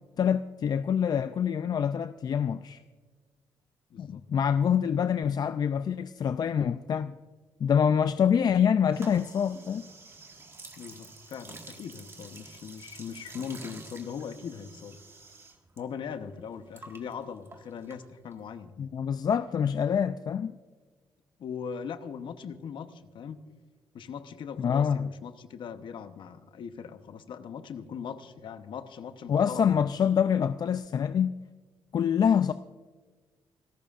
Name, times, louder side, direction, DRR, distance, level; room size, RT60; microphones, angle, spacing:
voice 1, 0.2-2.8 4.0-7.2 7.6-9.8 18.8-20.5 24.6-25.1 29.3-31.3 31.9-32.5, left 8 dB, 50° left, 12 dB, 0.4 m, -26 dB
voice 2, 3.9-4.2 10.8-15.0 15.8-18.9 21.4-23.4 23.9-29.7, left 7 dB, 65° left, 10 dB, 1.0 m, -40 dB
sound 1, 8.9-15.8 16.1-18.5, right 3 dB, 30° right, 1.7 m, -49 dB
26.5 x 13.5 x 2.5 m, 1.4 s
cardioid pair, 80°, 9 cm